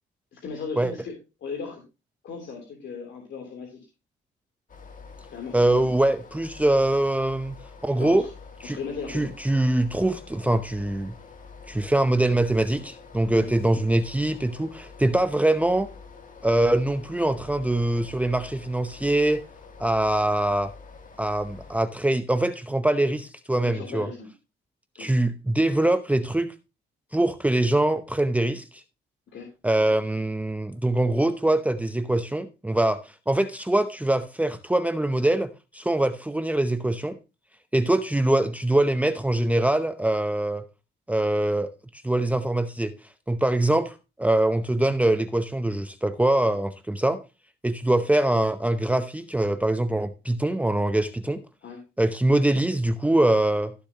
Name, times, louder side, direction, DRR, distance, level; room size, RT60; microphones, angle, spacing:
voice 1, 0.3-1.1 1.4-1.8 2.2-3.8 5.3-5.9 8.0-8.3 8.6-9.3 13.4-13.5 23.6-24.3 25.0-25.1 29.3-29.5 51.6-51.8, left 5 dB, 65° left, 3.2 m, -37 dB
sound 1, 4.7-21.9, left 5 dB, 40° left, 2.1 m, -46 dB
voice 2, 5.5-8.3 8.6-8.8 9.1-11.1 11.7-15.9 16.4-19.4 19.8-20.7 21.2-24.1 25.0-26.5 27.1-28.8 29.6-37.2 37.7-40.6 41.1-42.9 43.3-47.2 47.6-51.4 52.0-53.7, right 1 dB, 5° right, 0.7 m, -23 dB
16.0 x 7.0 x 2.9 m
cardioid pair, 90°, 20 cm